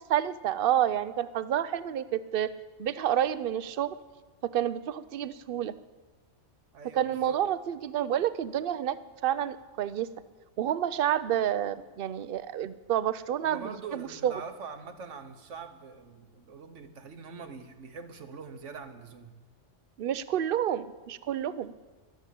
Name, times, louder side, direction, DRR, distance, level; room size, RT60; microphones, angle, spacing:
voice 1, 0.1-2.5 2.8-3.9 4.5-5.7 6.9-9.0 9.2-10.1 10.6-14.3 20.0-21.7, right 10 dB, 55° right, 15 dB, 0.7 m, -29 dB
voice 2, 6.7-7.4 13.4-19.4, right 5 dB, 75° right, 8 dB, 1.5 m, -43 dB
13.0 x 12.0 x 8.3 m, 1.3 s
omnidirectional pair, 1.3 m